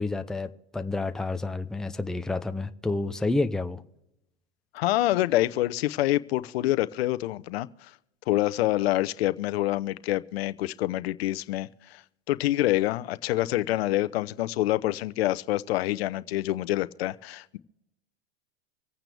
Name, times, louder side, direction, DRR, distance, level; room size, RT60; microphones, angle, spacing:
voice 1, 0.0-3.8, left 2 dB, ahead, 0.6 m, -29 dB
voice 2, 4.7-7.7 8.3-12.0 12.3-17.6, left 16 dB, 70° left, 0.8 m, -26 dB
25.5 x 9.0 x 3.4 m
hypercardioid pair, 115°, 32 cm